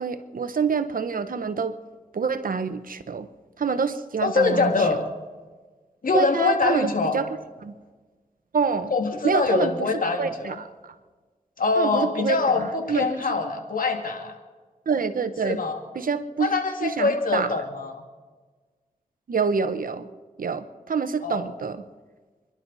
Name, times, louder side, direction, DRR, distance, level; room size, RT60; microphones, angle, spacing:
voice 1, 0.0-1.8 2.1-3.3 3.6-5.0 6.1-7.7 8.5-8.9 9.2-10.9 11.8-13.4 14.9-15.6 15.9-16.5 16.8-17.6 19.3-20.1 20.4-21.8, right 5 dB, 75° right, 11 dB, 1.1 m, -27 dB
voice 2, 4.2-5.0 6.0-7.1 8.9-10.6 11.6-14.4 15.4-15.8 16.4-18.0 21.2-21.5, left 4 dB, 70° left, 4 dB, 2.4 m, -24 dB
29.5 x 11.5 x 4.2 m, 1.4 s
cardioid pair, 50°, 15 cm